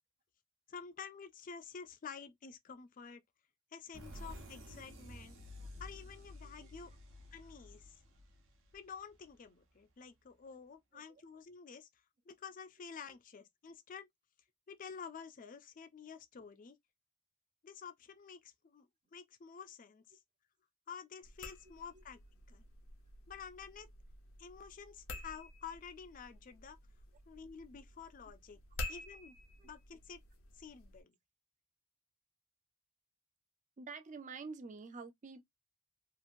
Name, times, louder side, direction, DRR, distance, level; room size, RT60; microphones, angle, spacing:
voice 1, 0.7-3.2 3.7-5.4 5.8-6.9 7.3-8.0 8.7-11.9 12.3-14.1 14.7-16.8 17.6-18.9 19.1-20.0 20.9-22.2 22.5-22.6 23.3-23.9 24.4-26.8 27.3-28.6 28.9-29.3 29.6-30.2 30.6-31.1, left 6 dB, 40° left, 0.4 m, -50 dB
sound 1, 3.9-9.5, left 1 dB, 75° right, 0.9 m, -52 dB
voice 2, 6.4-6.8 11.1-11.2 21.9-22.0 25.1-25.2 29.6-29.7 33.8-35.4, right 4 dB, 40° right, 0.5 m, -49 dB
sound 2, 21.2-31.0, left 2 dB, 90° left, 0.8 m, -50 dB
2.9 x 2.5 x 2.5 m
head